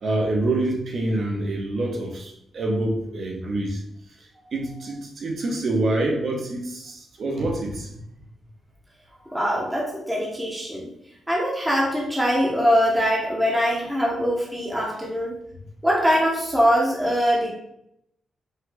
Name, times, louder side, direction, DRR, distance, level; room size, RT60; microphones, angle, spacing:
voice 1, 0.0-3.8 4.5-7.9, right 2 dB, 45° right, 1 dB, 1.0 m, -26 dB
voice 2, 9.3-10.9 11.3-15.4 15.8-17.5, equal, 5° right, -4 dB, 1.0 m, -22 dB
5.4 x 2.5 x 3.9 m, 0.76 s
wide cardioid pair, 155°, 0 cm